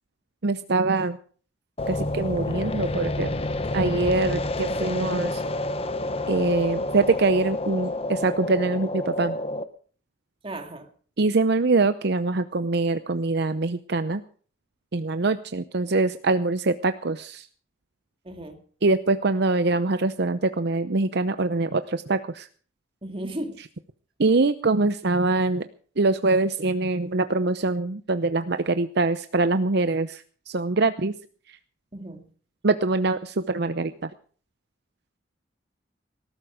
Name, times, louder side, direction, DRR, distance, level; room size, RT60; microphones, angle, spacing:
voice 1, 0.4-1.2 1.9-3.3 3.7-5.4 6.3-9.4 11.2-14.2 14.9-17.5 18.8-22.5 24.2-25.7 26.0-31.1 31.5-31.6 32.6-34.1, right 3 dB, 60° right, 11 dB, 0.7 m, -24 dB
sound 1, 1.8-9.6, left 1 dB, 30° left, 1.0 m, -29 dB
voice 2, 10.4-10.9 18.2-18.6 23.0-23.6 31.9-32.3, right 1 dB, 30° right, 5 dB, 2.3 m, -35 dB
18.5 x 12.5 x 5.0 m, 0.44 s
head